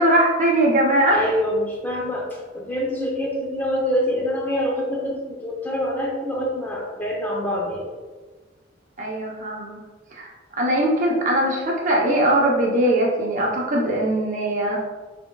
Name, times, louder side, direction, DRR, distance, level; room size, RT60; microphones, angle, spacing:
voice 1, 0.0-1.2 9.0-9.8 10.1-10.3 10.6-14.8, right 1 dB, 40° right, -2 dB, 0.7 m, -20 dB
voice 2, 1.1-7.9, equal, 10° left, -3 dB, 0.6 m, -25 dB
5.5 x 3.6 x 2.2 m, 1.3 s
head